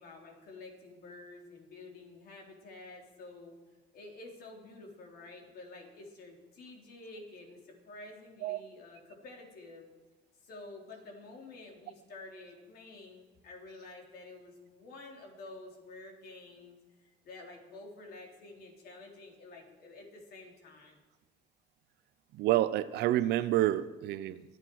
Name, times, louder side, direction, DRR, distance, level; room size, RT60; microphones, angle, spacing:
voice 1, 0.0-3.6 3.9-9.9 10.4-21.0, left 2 dB, 65° left, 1 dB, 3.5 m, -50 dB
voice 2, 22.3-24.4, right 14 dB, 80° right, 15 dB, 0.7 m, -28 dB
24.0 x 8.3 x 4.7 m, 1.3 s
cardioid pair, 110°, 17 cm